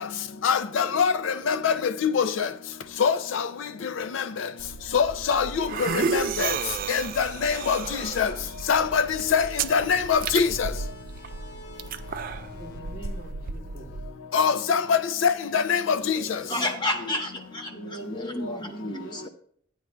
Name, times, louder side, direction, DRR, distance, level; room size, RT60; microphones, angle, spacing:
voice 1, 0.4-1.1 1.5-1.7 2.0-2.5 3.0-3.4 4.9-5.5 6.1-6.5 6.9-7.8 8.2-8.3 8.7-9.0 9.3-10.7 14.3-16.2, left 6 dB, 75° left, 0.4 m, -23 dB
sound 1, 4.6-14.1, right 5 dB, 45° right, 0.4 m, -33 dB
sound 2, 8.8-14.1, equal, 55° left, 1.2 m, -48 dB
voice 2, 12.5-14.0 17.7-19.3, right 1 dB, 40° left, 3.8 m, -42 dB
voice 3, 16.0-19.3, left 1 dB, 25° left, 1.0 m, -31 dB
14.0 x 9.3 x 2.2 m
head